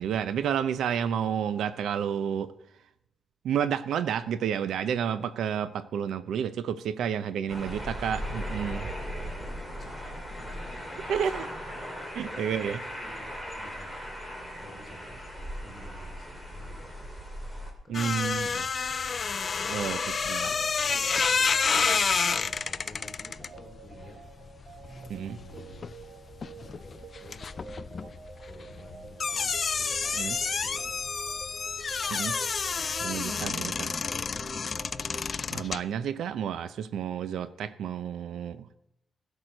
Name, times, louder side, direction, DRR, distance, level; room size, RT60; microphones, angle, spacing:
voice 1, 0.0-2.5 3.4-8.8 11.1-11.5 12.2-12.8 17.9-18.7 19.7-20.0 20.3-20.5 25.1-25.4 30.2-30.4 32.1-32.4 33.0-33.9 35.5-38.8, right 8 dB, 80° right, 14 dB, 0.6 m, -30 dB
sound 1, 7.5-17.7, equal, 10° right, 2.4 m, -38 dB
voice 2, 8.7-11.4 11.8-13.9 14.5-19.0 19.6-20.2 20.5-24.2 24.8-25.8 26.5-31.1 32.7-34.4, left 1 dB, 20° left, 0 dB, 3.3 m, -51 dB
sound 2, 17.9-26.1 26.3-35.8, left 5 dB, 35° left, 0.3 m, -29 dB
sound 3, 19.4-36.0, right 5 dB, 50° right, 0.8 m, -48 dB
15.0 x 6.4 x 6.4 m, 0.83 s
wide cardioid pair, 155°, 0 cm